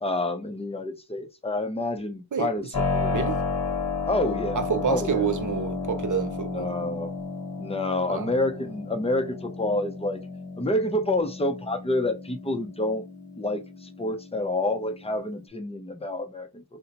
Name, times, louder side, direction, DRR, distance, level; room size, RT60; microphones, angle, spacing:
voice 1, 0.0-3.3 4.1-4.6 4.9-5.0 6.5-7.1 7.6-10.2 10.6-13.0 13.4-16.6, left 1 dB, 10° left, 0.6 m, -28 dB
Keyboard (musical), 2.7-15.5, left 4 dB, 45° left, 1.0 m, -33 dB
voice 2, 3.1-3.4 4.5-6.7 8.1-8.3, right 7 dB, 40° right, 0.6 m, -28 dB
2.7 x 2.2 x 4.0 m
wide cardioid pair, 65°, 49 cm